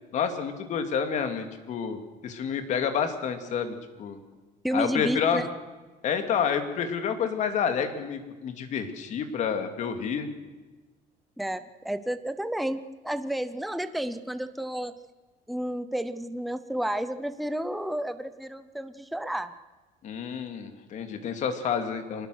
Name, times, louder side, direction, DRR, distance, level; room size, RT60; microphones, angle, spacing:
voice 1, 0.1-4.2 4.7-5.4 6.0-10.3 20.0-22.3, left 7 dB, 45° left, 7 dB, 2.6 m, -29 dB
voice 2, 4.6-5.5 11.4-14.9 15.5-19.5, right 1 dB, ahead, 11 dB, 0.7 m, -31 dB
24.5 x 19.5 x 6.5 m, 1.2 s
cardioid pair, 160°, 17 cm